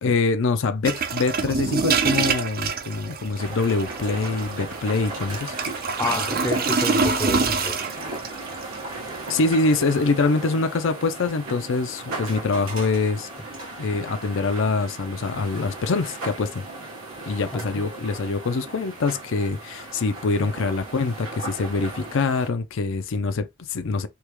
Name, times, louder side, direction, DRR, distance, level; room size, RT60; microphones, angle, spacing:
voice 1, 0.0-5.5 9.3-13.3 13.8-16.6 17.3-24.1, left 3 dB, 65° left, 0.5 m, -24 dB
sound 1, 0.8-10.1, right 4 dB, 45° right, 0.5 m, -26 dB
sound 2, 3.4-22.5, right 2 dB, 90° right, 1.3 m, -37 dB
voice 2, 6.0-7.9 17.5-17.8 20.4-20.5, left 2 dB, 15° left, 0.5 m, -29 dB
3.5 x 2.3 x 3.0 m
head